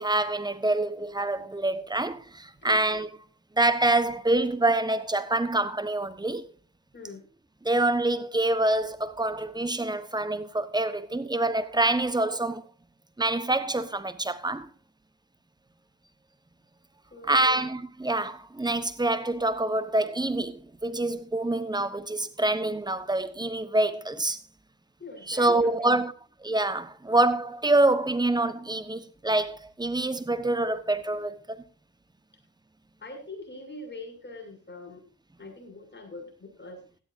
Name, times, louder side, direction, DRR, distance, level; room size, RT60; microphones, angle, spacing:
voice 1, 0.0-3.2 3.6-6.5 7.6-12.6 13.2-14.7 17.2-24.4 25.3-26.1 26.4-31.6, right 2 dB, 10° right, 1.2 m, -26 dB
voice 2, 6.9-7.2 17.1-17.6 25.0-25.9 33.0-35.0 35.4-36.8, left 2 dB, 25° left, 6.7 m, -43 dB
17.0 x 12.5 x 2.7 m
hypercardioid pair, 50°, 46 cm